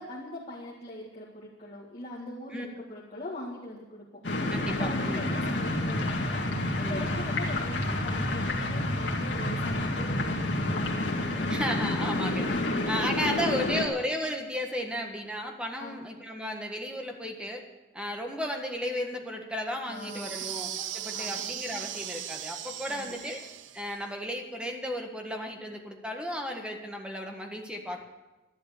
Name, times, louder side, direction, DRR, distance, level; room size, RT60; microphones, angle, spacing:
voice 1, 0.0-4.0 4.4-11.5 11.9-12.1 12.8-13.7 15.8-16.0 19.9-20.5 21.1-21.4 22.9-23.1, left 1 dB, 35° left, -6 dB, 2.1 m, -41 dB
sound 1, 4.2-13.9, left 1 dB, 75° left, 2.1 m, -29 dB
voice 2, 4.5-5.3 6.8-7.2 11.5-12.4 12.9-17.6 17.9-23.4 23.7-28.0, equal, 5° right, 2 dB, 1.5 m, -34 dB
sound 2, 19.9-24.0, right 11 dB, 90° right, 0.6 m, -38 dB
12.5 x 11.0 x 6.8 m, 1.1 s
head